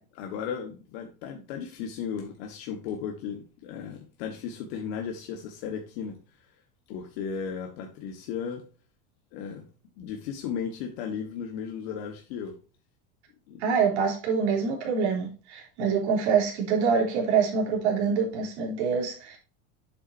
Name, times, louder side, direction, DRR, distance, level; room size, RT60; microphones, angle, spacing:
voice 1, 0.2-6.2 6.9-8.6 9.3-9.6 10.0-12.5 13.5-13.6, left 7 dB, 65° left, 1.6 m, -35 dB
voice 2, 13.6-19.4, right 6 dB, 85° right, 3.8 m, -25 dB
8.7 x 7.2 x 2.7 m
supercardioid pair, 145°, 33 cm